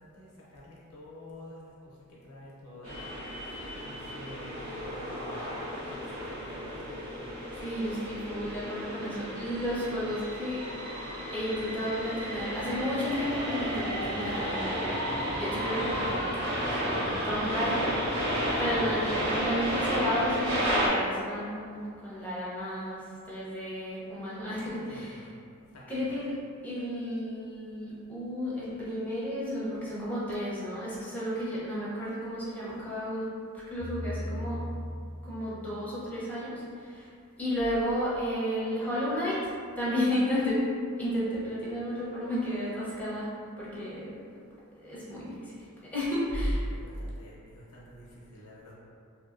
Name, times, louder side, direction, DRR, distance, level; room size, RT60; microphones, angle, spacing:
voice 1, 0.0-7.1 18.9-19.1 24.6-25.3 25.6-25.9 46.5-48.7, left 1 dB, 90° left, -6 dB, 0.7 m, -49 dB
sound 1, 2.8-20.9, equal, 65° right, 1.0 m, -32 dB
voice 2, 7.6-10.6 11.3-14.9 15.3-16.5 16.8-18.0 18.6-25.2 25.9-33.3 33.5-34.6 35.2-37.1 37.4-40.6 41.0-44.1 44.8-45.5 45.8-46.6, equal, 5° left, -9 dB, 0.7 m, -32 dB
sound 2, 33.8-36.0, left 1 dB, 35° right, 0.9 m, -37 dB
2.7 x 2.6 x 2.5 m, 2.3 s
head